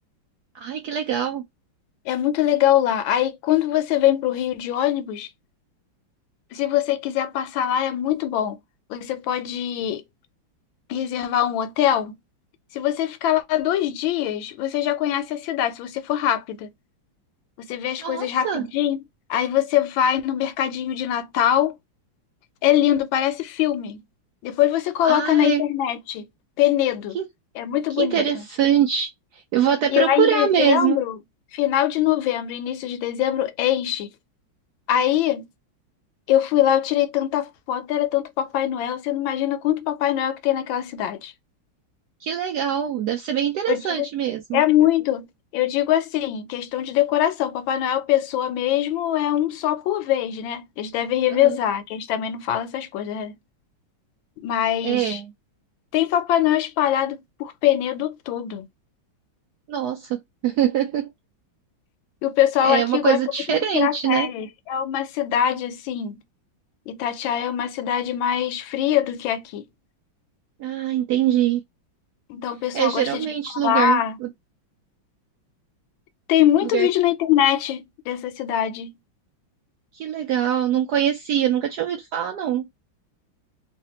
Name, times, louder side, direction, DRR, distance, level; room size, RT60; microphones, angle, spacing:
voice 1, 0.5-1.4 18.0-18.7 25.0-25.6 27.1-27.2 28.0-31.0 42.2-44.6 51.3-51.6 54.8-55.3 59.7-61.1 62.6-64.3 70.6-71.6 72.7-74.3 76.6-76.9 79.9-82.7, right 10 dB, 75° right, 0.9 m, -23 dB
voice 2, 2.1-5.3 6.5-8.6 8.9-10.0 10.9-12.1 12.7-16.7 17.6-19.0 19.3-21.8 22.6-24.0 24.4-26.3 26.6-27.2 27.6-28.2 29.9-31.2 31.5-34.1 34.9-35.5 36.3-41.3 43.7-44.1 44.5-45.3 45.5-53.3 54.4-55.2 55.9-58.7 62.2-63.2 63.7-66.2 66.9-69.6 72.3-74.2 76.3-78.9, left 11 dB, 80° left, 1.3 m, -23 dB
3.2 x 2.5 x 2.8 m
omnidirectional pair, 2.2 m